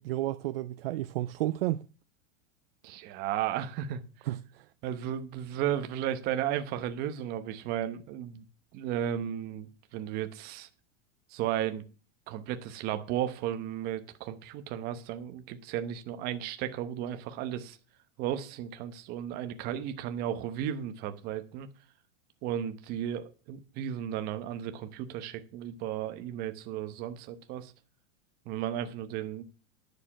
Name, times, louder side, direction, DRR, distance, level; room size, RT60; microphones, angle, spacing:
voice 1, 0.0-1.8 4.3-4.6, right 15 dB, 50° right, 0.4 m, -32 dB
voice 2, 2.8-4.3 4.8-8.5 8.7-10.7 11.3-11.9 12.3-17.8 18.2-21.7 22.4-27.7 28.5-29.4, right 10 dB, 25° right, 0.9 m, -34 dB
10.0 x 6.6 x 5.9 m
supercardioid pair, 175°, 38 cm